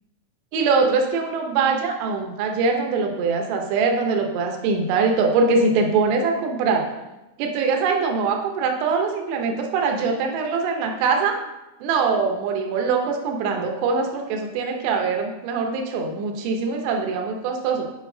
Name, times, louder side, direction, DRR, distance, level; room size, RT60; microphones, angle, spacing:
voice 1, 0.5-6.8 7.4-11.4 11.8-17.8, right 4 dB, 75° right, 2 dB, 2.8 m, -22 dB
9.3 x 5.1 x 2.7 m, 0.99 s
omnidirectional pair, 5.4 m